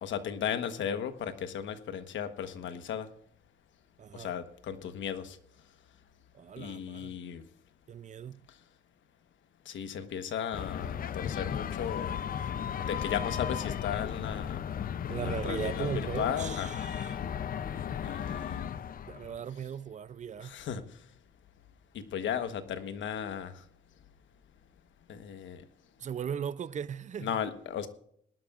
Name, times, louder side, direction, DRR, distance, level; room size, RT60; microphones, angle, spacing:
voice 1, 0.0-3.1 4.1-5.4 6.6-7.4 9.7-12.1 12.8-14.6 15.1-16.7 18.0-18.7 20.4-20.8 21.9-23.5 25.1-25.6 27.2-27.9, left 8 dB, 75° left, 1.2 m, -35 dB
voice 2, 4.0-4.3 6.3-7.1 7.9-8.4 15.1-17.2 19.1-20.6 26.0-27.4, right 8 dB, 40° right, 0.5 m, -38 dB
sound 1, 10.5-19.4, left 8 dB, 45° left, 0.5 m, -35 dB
21.0 x 12.0 x 2.5 m
cardioid pair, 90°, 20 cm